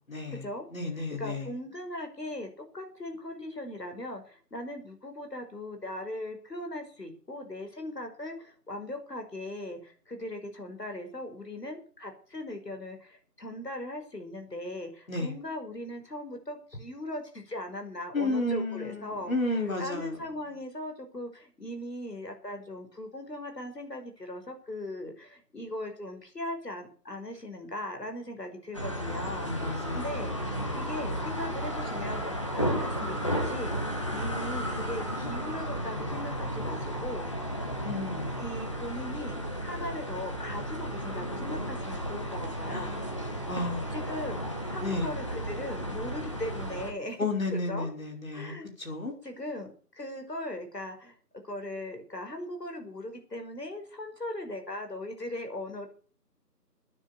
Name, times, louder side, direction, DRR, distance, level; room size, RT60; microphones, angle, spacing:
voice 1, 0.1-0.4 0.7-1.5 15.1-15.3 18.1-20.2 29.5-30.9 37.8-38.4 42.7-43.1 43.5-43.9 44.8-45.1 47.2-49.1, left 2 dB, 55° left, 3 dB, 5.2 m, -33 dB
voice 2, 1.0-19.3 19.8-33.7 34.1-37.3 38.4-43.1 43.9-47.2 47.5-47.9 48.3-48.7 49.2-51.1 51.4-55.9, left 1 dB, 75° left, 5 dB, 5.5 m, -39 dB
sound 1, 28.7-46.9, equal, 20° left, 1.4 m, -33 dB
14.5 x 9.7 x 7.0 m, 0.43 s
figure-of-eight pair, 170°, 48 cm